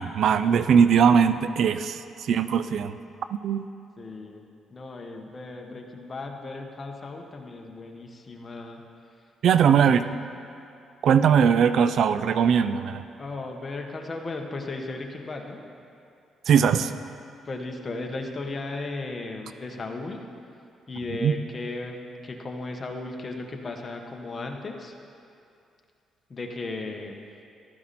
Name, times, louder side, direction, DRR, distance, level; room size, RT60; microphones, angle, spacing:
voice 1, 0.0-2.9 3.4-3.7 9.4-10.0 11.0-13.0 16.5-16.9 21.2-21.3, right 7 dB, 70° right, 12 dB, 0.5 m, -20 dB
voice 2, 4.0-4.4 4.7-8.8 9.1-9.3 9.6-9.9 13.2-15.6 17.4-20.2 20.9-25.0 26.3-27.2, left 2 dB, 35° left, 2 dB, 1.5 m, -36 dB
14.5 x 12.5 x 4.3 m, 2.5 s
cardioid pair, 90°, 0 cm